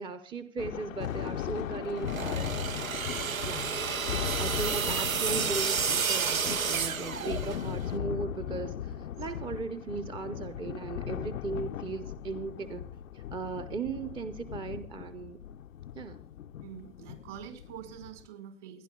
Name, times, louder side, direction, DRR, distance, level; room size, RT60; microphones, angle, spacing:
voice 1, 0.0-3.7 4.1-12.8 13.1-15.4 16.0-16.2, right 4 dB, 10° right, 10 dB, 0.6 m, -37 dB
Thunder, 0.6-18.3, left 10 dB, 75° left, 0.6 m, -38 dB
sound 1, 2.0-7.8, right 6 dB, 90° right, 0.8 m, -31 dB
voice 2, 3.2-3.8 9.2-9.3 16.6-18.8, right 10 dB, 60° right, 6 dB, 5.0 m, -46 dB
29.0 x 11.0 x 2.3 m, 0.37 s
hypercardioid pair, 105°, 40 cm